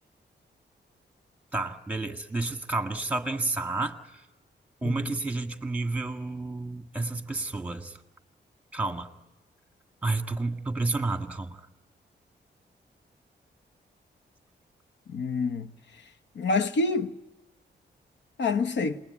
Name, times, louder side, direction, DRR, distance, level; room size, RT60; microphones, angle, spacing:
voice 1, 1.5-4.0 4.8-8.0 8.7-9.1 10.0-11.6, right 3 dB, 10° right, 1.7 m, -30 dB
voice 2, 4.8-5.1 15.1-15.7 16.3-17.1 18.4-19.0, left 3 dB, 75° left, 1.0 m, -27 dB
27.5 x 20.5 x 9.6 m
wide cardioid pair, 130°, 19 cm